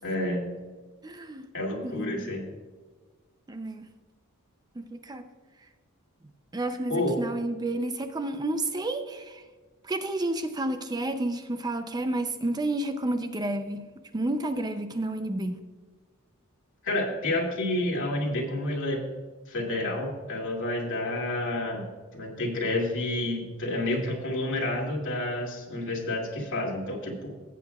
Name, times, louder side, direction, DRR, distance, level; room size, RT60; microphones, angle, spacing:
voice 1, 0.0-0.5 1.5-2.5 6.9-7.2 16.8-19.0 19.5-21.8 22.1-27.3, left 1 dB, 60° left, -2 dB, 2.5 m, -29 dB
voice 2, 1.0-1.5 1.8-2.3 3.5-3.9 4.8-5.2 6.5-9.4 9.9-13.8 14.1-15.5, right 1 dB, 20° right, 8 dB, 0.5 m, -30 dB
16.5 x 8.4 x 2.3 m, 1.4 s
head